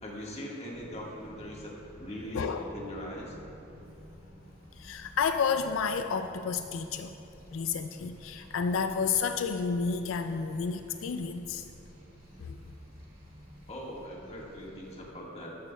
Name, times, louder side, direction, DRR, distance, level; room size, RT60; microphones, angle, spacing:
voice 1, 0.0-3.4 13.7-15.6, left 1 dB, 35° left, -3 dB, 1.6 m, -41 dB
sound 1, 0.7-15.1, equal, 45° right, 2.1 m, -53 dB
voice 2, 2.3-2.7 4.8-7.1 7.5-11.6 12.4-12.6, left 5 dB, 85° left, 7 dB, 0.4 m, -31 dB
12.5 x 12.0 x 2.3 m, 2.9 s
head